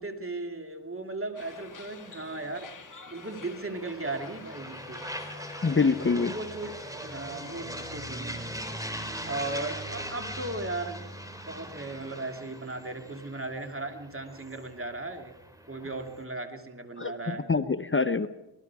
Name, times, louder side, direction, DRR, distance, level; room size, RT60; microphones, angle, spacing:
voice 1, 0.0-2.7 3.1-5.0 6.0-8.4 9.3-11.1 11.5-15.3 15.7-17.5, right 2 dB, 30° right, 5 dB, 2.8 m, -37 dB
sound 1, 1.4-7.6, left 5 dB, 45° left, 1.2 m, -50 dB
sound 2, 1.4-16.2, equal, 10° right, 4.1 m, -41 dB
voice 2, 5.6-6.3 17.0-18.3, left 4 dB, 30° left, 11 dB, 0.7 m, -25 dB
27.5 x 20.0 x 4.8 m, 0.98 s
cardioid pair, 55°, 43 cm